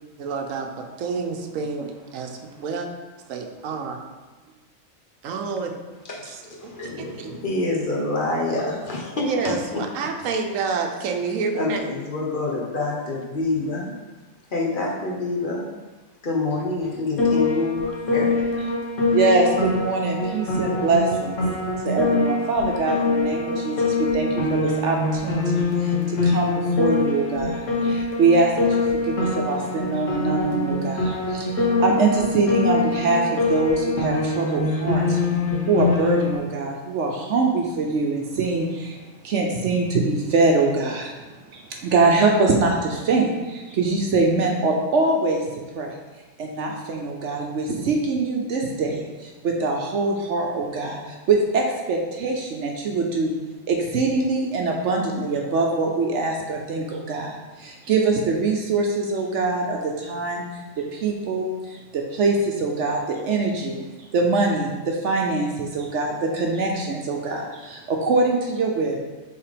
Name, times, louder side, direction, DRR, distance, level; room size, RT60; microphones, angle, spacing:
voice 1, 0.2-2.9 3.3-4.0 5.2-5.7 7.2-7.4 8.6-8.7 9.2-11.8, right 5 dB, 85° right, 5 dB, 1.1 m, -28 dB
voice 2, 6.0-9.8 10.6-10.8 11.5-14.0 14.5-15.7 16.2-18.4, left 2 dB, 40° left, -2 dB, 1.2 m, -27 dB
Piano, 17.2-36.4, left 3 dB, 70° left, 1.6 m, -24 dB
voice 3, 19.1-21.4 21.8-35.2 35.7-41.1 41.5-45.5 45.7-45.9 46.4-53.3 53.7-60.4 60.9-63.8 64.1-69.0, right 3 dB, 70° right, 1 dB, 1.0 m, -23 dB
5.8 x 3.7 x 5.0 m, 1.2 s
omnidirectional pair, 1.3 m